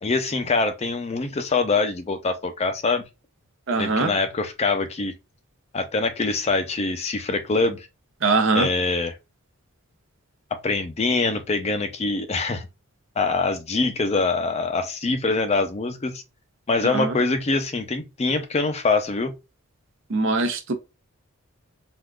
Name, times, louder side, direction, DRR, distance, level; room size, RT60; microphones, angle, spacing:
voice 1, 0.0-3.0 3.8-5.1 5.7-7.9 8.5-9.1 10.6-12.7 13.2-16.2 16.7-19.3, left 3 dB, 30° left, 0.4 m, -24 dB
voice 2, 3.7-4.1 8.2-8.7 16.8-17.2 20.1-20.7, right 3 dB, 60° right, 0.6 m, -22 dB
3.5 x 2.5 x 2.3 m
head